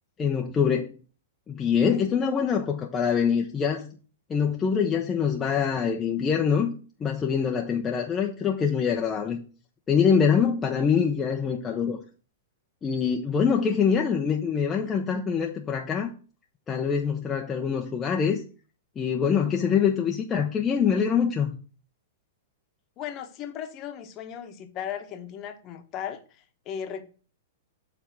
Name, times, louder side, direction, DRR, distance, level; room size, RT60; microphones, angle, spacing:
voice 1, 0.2-0.9 1.5-3.9 4.3-6.7 7.0-9.4 9.9-12.0 12.8-16.1 16.7-18.4 19.0-21.6, left 6 dB, 20° left, 1 dB, 0.8 m, -24 dB
voice 2, 23.0-27.0, left 9 dB, 35° left, 6 dB, 1.1 m, -36 dB
7.1 x 3.5 x 6.0 m, 0.38 s
hypercardioid pair, 120°, 0 cm